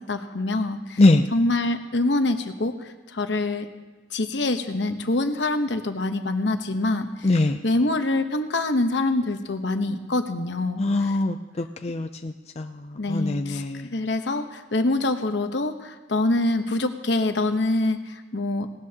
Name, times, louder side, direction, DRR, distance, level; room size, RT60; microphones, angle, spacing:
voice 1, 0.1-1.0 1.3-3.7 4.1-11.2 13.0-18.7, left 2 dB, 70° left, 7 dB, 1.0 m, -25 dB
voice 2, 7.2-7.6 10.8-12.7 13.1-13.8, left 2 dB, 35° left, 7 dB, 0.5 m, -22 dB
19.0 x 18.0 x 2.9 m, 1.2 s
head